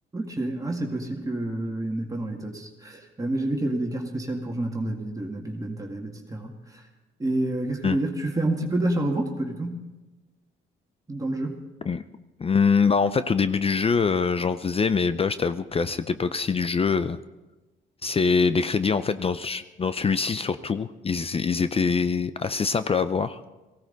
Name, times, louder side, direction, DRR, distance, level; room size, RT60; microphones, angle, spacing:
voice 1, 0.1-6.8 7.2-9.8 11.1-11.6, right 1 dB, 15° right, 0 dB, 2.0 m, -29 dB
voice 2, 12.4-17.2 18.0-23.4, left 5 dB, 30° left, 12 dB, 0.5 m, -24 dB
18.5 x 16.0 x 4.0 m, 1.2 s
cardioid pair, 90°, 20 cm